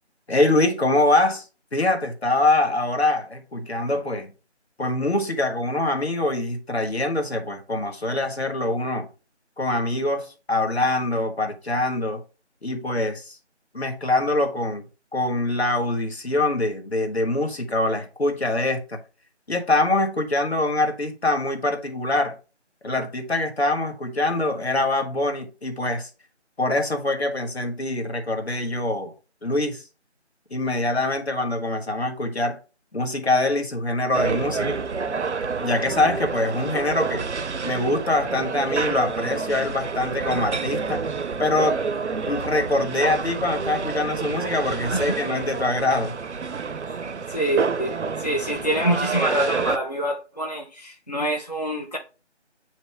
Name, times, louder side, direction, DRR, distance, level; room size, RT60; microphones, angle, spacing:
voice 1, 0.3-1.5 1.7-4.3 4.8-9.1 9.6-12.2 12.6-13.4 13.7-14.8 15.1-19.0 19.5-22.4 22.8-26.1 26.6-29.1 29.4-29.8 30.5-32.6 32.9-34.8 35.6-37.3 37.6-41.0 41.4-41.8 42.3-46.2, left 2 dB, 60° left, 1.5 m, -24 dB
sound 1, 34.1-49.8, right 5 dB, 75° right, 0.6 m, -28 dB
voice 2, 47.3-52.0, right 1 dB, 35° left, 0.6 m, -26 dB
9.0 x 3.1 x 3.4 m
figure-of-eight pair, 175°, 35 cm